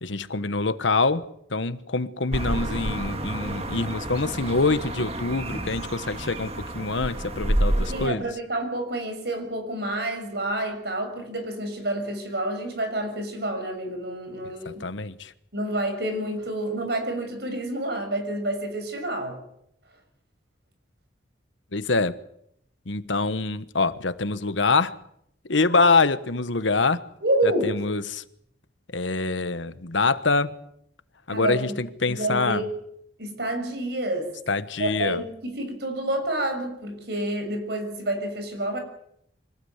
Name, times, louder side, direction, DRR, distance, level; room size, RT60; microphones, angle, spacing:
voice 1, 0.0-1.3 1.5-8.3 14.6-15.3 21.7-22.2 22.9-25.0 25.5-27.0 27.4-28.2 28.9-30.5 31.3-32.6 34.5-35.2, left 3 dB, 80° left, 1.2 m, -25 dB
sound 1, 2.3-8.1, right 1 dB, 35° right, 2.2 m, -29 dB
voice 2, 7.9-14.9 15.5-19.4 27.2-27.7 31.3-31.7 32.1-32.7 33.2-34.3 34.8-38.8, right 1 dB, 60° right, 6.6 m, -28 dB
25.5 x 19.0 x 8.1 m
head